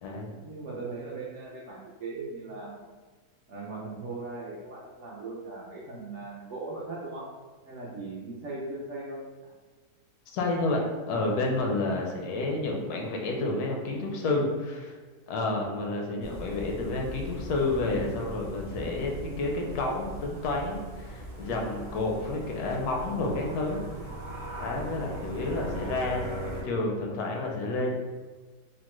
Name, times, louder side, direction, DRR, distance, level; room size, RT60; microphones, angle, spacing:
voice 1, 0.4-2.8 3.5-7.3 7.6-9.2, right 3 dB, 65° right, -5 dB, 0.7 m, -39 dB
voice 2, 10.3-14.9 15.3-23.8 24.6-27.9, left 2 dB, 80° left, 0 dB, 1.1 m, -30 dB
sound 1, 16.2-26.6, right 1 dB, 25° right, 0.7 m, -39 dB
3.6 x 2.1 x 3.0 m, 1.4 s
omnidirectional pair, 1.7 m